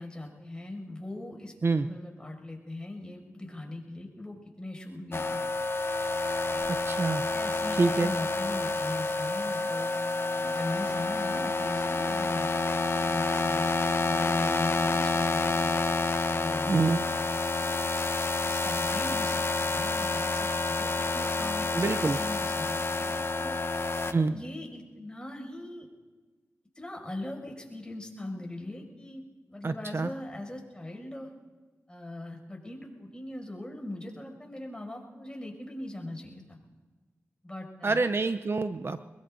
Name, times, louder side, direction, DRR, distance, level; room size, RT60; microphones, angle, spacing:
voice 1, 0.0-1.5 1.8-5.4 6.4-6.6 7.3-9.9 10.3-13.6 14.0-15.7 16.3-17.2 17.6-18.1 18.4-25.9 26.7-29.2 29.5-31.3 31.9-36.6 37.4-38.0, left 1 dB, 15° left, 1 dB, 6.5 m, -40 dB
sound 1, 5.1-24.1, left 3 dB, 50° left, 0.9 m, -29 dB
voice 2, 6.7-7.2 7.7-8.1 16.7-17.1 21.7-22.2 24.1-24.4 29.6-30.1 37.8-39.0, right 3 dB, 50° right, 11 dB, 0.7 m, -26 dB
24.0 x 21.5 x 2.7 m, 1.3 s
cardioid pair, 45°, 5 cm